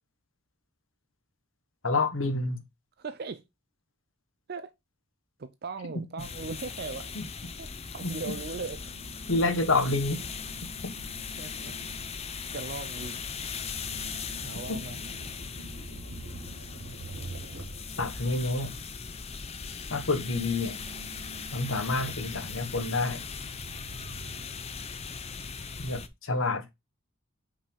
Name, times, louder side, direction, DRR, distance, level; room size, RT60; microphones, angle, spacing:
voice 1, 1.8-2.6 7.1-7.2 8.0-8.3 9.3-10.2 14.7-14.8 18.0-18.8 19.9-20.8 21.5-23.2 25.8-26.7, left 2 dB, 65° left, 1.3 m, -28 dB
voice 2, 3.0-3.4 4.5-4.7 5.4-7.1 7.6-8.8 11.4-11.8 12.5-13.2 14.4-15.0, right 4 dB, 45° right, 0.5 m, -38 dB
sound 1, 6.2-26.1, left 5 dB, 30° left, 0.6 m, -39 dB
sound 2, 8.3-19.0 19.3-24.5, right 2 dB, 85° right, 2.5 m, -47 dB
5.4 x 5.2 x 5.3 m
head